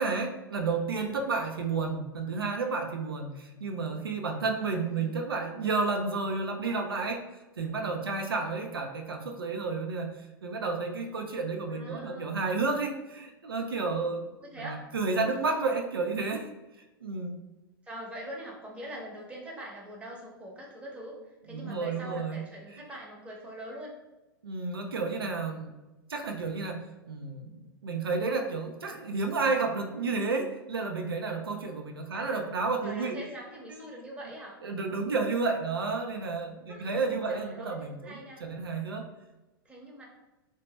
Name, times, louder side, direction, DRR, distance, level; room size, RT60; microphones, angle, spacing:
voice 1, 0.0-7.2 7.6-10.1 10.4-14.3 14.6-16.5 17.0-17.4 21.5-22.4 22.7-22.8 24.4-25.8 26.1-33.2 33.7-33.8 34.6-39.1, right 4 dB, 80° right, 3 dB, 0.4 m, -31 dB
voice 2, 11.7-12.3 14.4-14.8 17.8-23.9 32.1-32.4 32.8-34.6 36.7-36.9 37.3-38.4 39.6-40.1, right 1 dB, 10° right, -3 dB, 0.9 m, -43 dB
3.2 x 2.0 x 3.0 m, 1.1 s
figure-of-eight pair, 100°, 12 cm